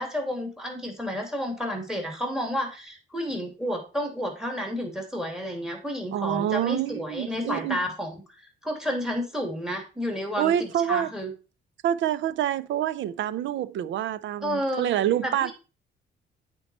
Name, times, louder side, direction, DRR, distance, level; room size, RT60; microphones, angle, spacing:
voice 1, 0.0-8.1 8.6-11.3 14.4-14.9 15.2-15.5, equal, 5° right, 2.6 m, -31 dB
voice 2, 6.1-7.8 10.4-11.1 11.8-15.5, right 11 dB, 70° right, 0.5 m, -27 dB
8.7 x 4.6 x 4.2 m
cardioid pair, 90°, 20 cm